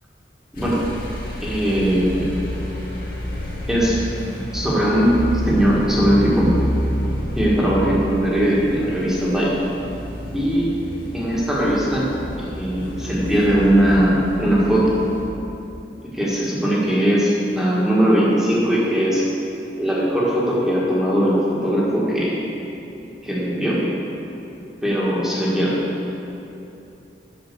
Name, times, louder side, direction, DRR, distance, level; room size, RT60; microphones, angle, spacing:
sound 1, 0.5-15.2, equal, 55° left, 2.2 m, -29 dB
voice 1, 1.4-2.2 3.7-4.0 4.5-5.2 5.4-6.5 7.3-9.6 10.3-10.7 11.1-12.1 12.4-15.1 16.1-19.3 19.8-22.3 23.2-23.8 24.8-25.7, equal, 5° right, -7 dB, 1.7 m, -19 dB
8.6 x 6.2 x 6.8 m, 2.9 s
head